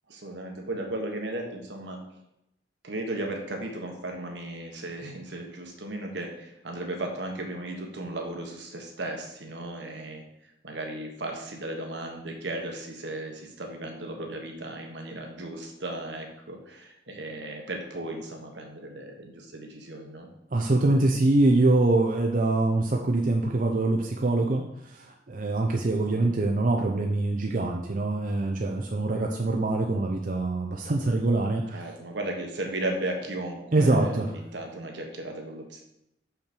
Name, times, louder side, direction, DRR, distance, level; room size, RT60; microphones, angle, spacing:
voice 1, 0.1-2.0 2.8-10.2 10.6-20.3 26.1-26.4 31.7-35.8, right 1 dB, 75° right, 2 dB, 1.4 m, -35 dB
voice 2, 20.5-31.8 33.7-34.3, right 2 dB, 45° right, 1 dB, 0.6 m, -24 dB
6.5 x 5.8 x 4.5 m, 0.82 s
head